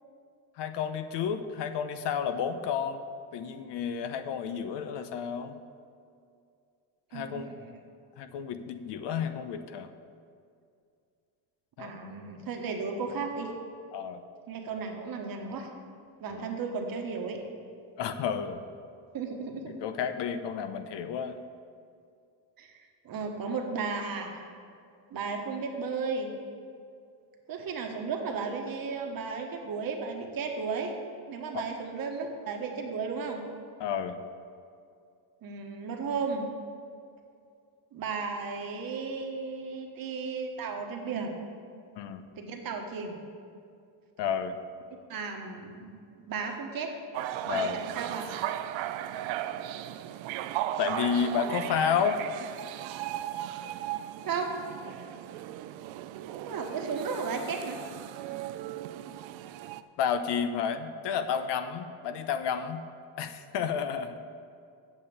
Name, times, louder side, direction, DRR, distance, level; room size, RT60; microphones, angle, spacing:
voice 1, 0.6-3.0 3.3-5.6 7.1-7.5 8.2-9.9 11.8-11.9 13.9-14.2 16.3-16.5 18.0-18.6 19.7-21.4 31.5-31.6 33.8-34.2 42.0-42.3 44.2-44.6 47.5-47.8 50.8-52.2 60.0-62.8 63.2-64.2, left 7 dB, 60° left, 9 dB, 0.8 m, -31 dB
voice 2, 7.1-7.8 11.8-13.5 14.5-15.7 16.2-17.4 19.1-19.7 22.6-22.7 23.0-24.4 25.1-26.3 27.5-30.9 31.3-33.4 35.4-36.4 37.9-41.4 42.4-43.2 45.1-46.9 47.5-48.2 54.2-54.5 56.4-57.8, right 5 dB, 45° right, 3 dB, 1.4 m, -34 dB
sound 1, 47.1-59.8, right 12 dB, 70° right, 0.6 m, -36 dB
8.3 x 6.7 x 7.0 m, 2.4 s
cardioid pair, 120°, 47 cm